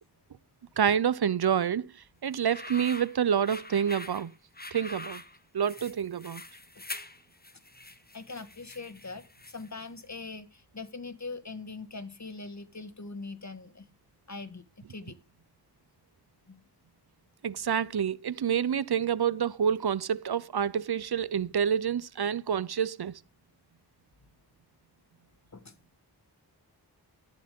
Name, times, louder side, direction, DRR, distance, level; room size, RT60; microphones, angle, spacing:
voice 1, 0.8-1.9 2.2-4.3 4.7-5.2 5.5-6.4 17.4-23.1, right 8 dB, 70° right, 0.7 m, -28 dB
sound 1, 2.3-9.8, left 2 dB, 25° left, 1.5 m, -44 dB
voice 2, 8.1-13.9 14.3-15.2 16.5-16.6 25.5-25.7, left 3 dB, 40° left, 1.8 m, -42 dB
13.0 x 11.5 x 3.7 m
wide cardioid pair, 45°, 40 cm